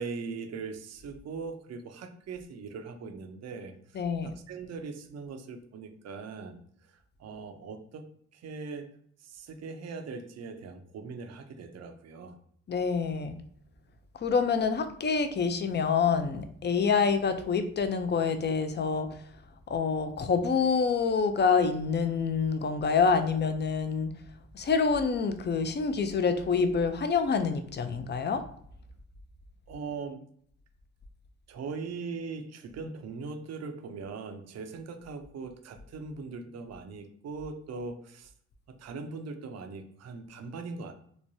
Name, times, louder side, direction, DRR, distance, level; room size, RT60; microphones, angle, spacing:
voice 1, 0.0-6.6 7.2-8.1 8.3-8.9 9.2-12.4 29.7-30.3 31.5-38.3 38.7-40.9, right 4 dB, 50° right, 7 dB, 0.5 m, -40 dB
voice 2, 3.9-4.3 12.7-13.4 14.1-19.3 19.7-24.2 24.5-28.4, left 5 dB, 35° left, 9 dB, 0.4 m, -27 dB
3.0 x 2.2 x 2.6 m, 0.64 s
supercardioid pair, 55°, 33 cm